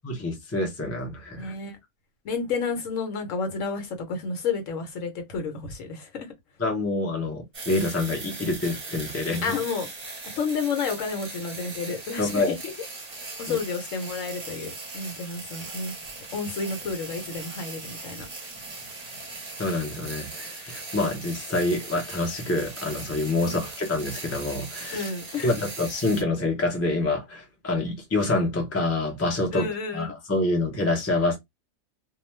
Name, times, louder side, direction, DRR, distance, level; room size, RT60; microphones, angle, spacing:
voice 1, 0.0-1.5 6.6-9.5 12.2-12.6 13.5-13.6 19.6-25.1 25.4-31.4, left 2 dB, 20° left, 0.4 m, -27 dB
voice 2, 1.4-1.8 2.2-6.3 9.4-9.9 10.4-12.7 13.4-15.9 16.3-18.3 23.4-23.6 24.9-25.5 29.5-30.1, left 5 dB, 65° left, 1.0 m, -31 dB
sound 1, 7.5-26.2, right 3 dB, 35° right, 0.8 m, -39 dB
2.4 x 2.3 x 3.1 m
omnidirectional pair, 1.6 m